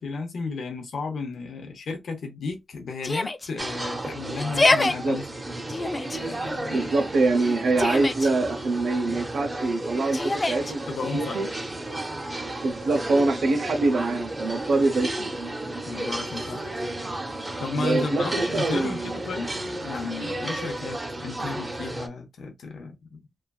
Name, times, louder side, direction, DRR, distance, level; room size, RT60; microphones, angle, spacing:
voice 1, 0.0-5.4 6.1-6.9 10.9-11.4 14.7-14.8 15.9-16.8 17.6-19.5 19.8-23.2, left 4 dB, 85° left, 0.6 m, -33 dB
Yell, 3.0-3.5 4.4-4.9 5.7-6.2 7.4-8.3 10.1-10.7, left 2 dB, 25° left, 0.3 m, -24 dB
sound 1, 3.6-22.1, right 1 dB, 25° right, 0.6 m, -33 dB
voice 2, 4.8-5.2 6.7-10.8 11.1-11.5 12.6-15.3 17.8-19.2, right 3 dB, 75° right, 0.6 m, -24 dB
3.1 x 2.4 x 2.3 m
wide cardioid pair, 120°, 0 cm